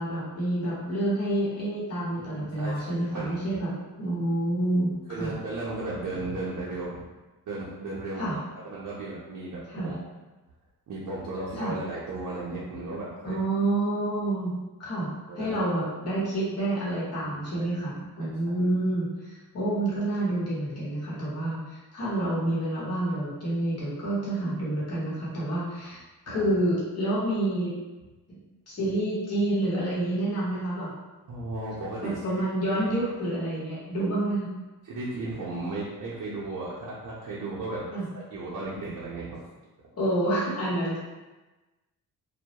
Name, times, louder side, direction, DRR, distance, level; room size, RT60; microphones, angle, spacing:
voice 1, 0.0-3.7 4.0-5.3 8.2-8.3 9.7-9.9 11.6-11.7 13.2-14.5 14.8-27.7 28.3-28.4 28.7-30.9 32.0-34.5 37.9-38.1 40.0-41.0, right 1 dB, 40° left, -8 dB, 1.0 m, -28 dB
voice 2, 2.2-3.5 5.1-7.1 7.5-8.3 8.6-10.0 10.9-13.4 15.3-15.6 16.1-16.2 17.2-17.7 18.2-18.6 26.3-26.5 31.3-32.3 32.7-32.9 34.8-37.9 38.3-39.4, right 2 dB, 55° right, -7 dB, 0.6 m, -35 dB
2.2 x 2.1 x 2.8 m, 1.1 s
cardioid pair, 75°, 39 cm